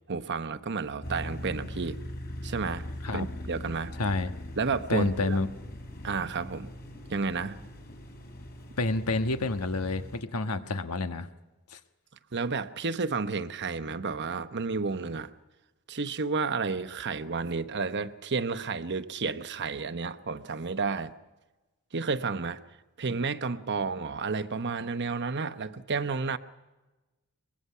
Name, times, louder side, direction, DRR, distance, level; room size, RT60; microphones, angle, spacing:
voice 1, 0.1-2.0 2.4-2.8 3.1-3.9 4.6-5.4 6.0-6.7 7.1-7.6 12.3-15.3 15.9-21.1 21.9-22.6 23.0-26.4, right 4 dB, 50° right, 11 dB, 0.9 m, -31 dB
sound 1, 1.0-10.2, left 1 dB, 45° left, 4.1 m, -41 dB
voice 2, 4.0-4.3 4.9-5.5 8.8-11.3 11.7-11.8, left 2 dB, 90° left, 8 dB, 1.3 m, -28 dB
23.5 x 21.5 x 5.6 m, 1.1 s
head